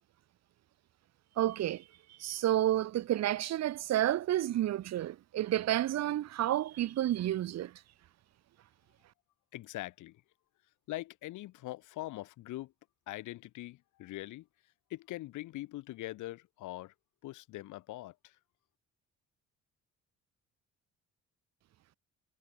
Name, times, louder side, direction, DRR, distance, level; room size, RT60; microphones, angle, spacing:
voice 1, 1.4-1.8 2.2-7.7, right 13 dB, 60° right, 0.7 m, -30 dB
voice 2, 9.5-10.2 10.9-12.7 13.1-14.5 14.9-16.9 17.2-18.4, left 17 dB, 85° left, 0.9 m, -42 dB
cardioid pair, 90°, 30 cm